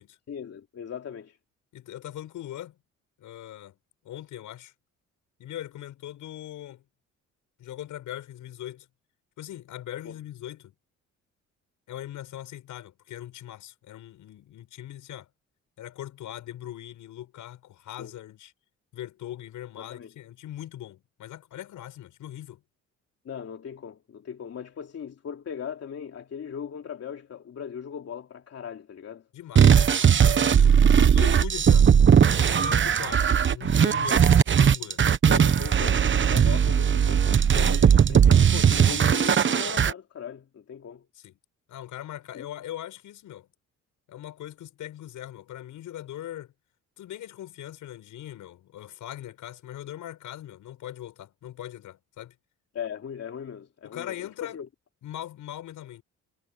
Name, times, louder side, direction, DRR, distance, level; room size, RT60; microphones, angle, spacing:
voice 1, 0.3-1.4 10.0-10.2 18.0-18.1 19.8-20.1 23.2-29.2 35.3-41.1 42.3-42.5 52.7-54.7, left 8 dB, 55° left, 3.1 m, -39 dB
voice 2, 1.7-2.8 3.2-3.8 4.0-4.7 5.4-6.8 7.6-8.9 9.4-10.7 11.9-15.3 15.8-18.5 18.9-22.6 29.3-31.9 32.4-35.0 41.2-41.3 41.7-43.5 44.1-46.5 47.0-52.4 53.8-54.6 55.0-56.0, left 12 dB, 80° left, 7.7 m, -40 dB
sound 1, 29.6-39.9, right 8 dB, 40° right, 1.1 m, -19 dB
cardioid pair, 90°, 30 cm